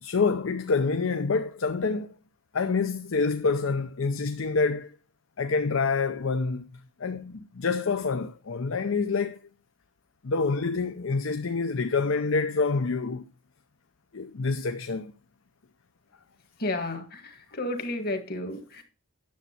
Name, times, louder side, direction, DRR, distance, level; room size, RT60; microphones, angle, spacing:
voice 1, 0.0-2.1 2.5-4.9 5.4-6.7 7.0-9.4 10.2-13.2 14.1-15.1, left 4 dB, 90° left, 0.6 m, -27 dB
voice 2, 16.6-18.8, left 2 dB, 50° left, 1.7 m, -32 dB
9.5 x 7.3 x 4.3 m
head